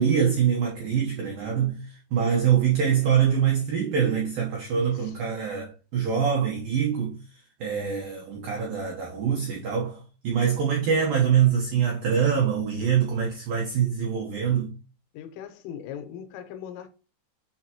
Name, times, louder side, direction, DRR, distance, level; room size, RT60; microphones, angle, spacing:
voice 1, 0.0-7.2 7.6-14.7, right 8 dB, 90° right, 2.0 m, -24 dB
voice 2, 4.7-5.2 15.1-16.9, left 9 dB, 90° left, 3.2 m, -39 dB
10.5 x 3.4 x 2.9 m
omnidirectional pair, 5.6 m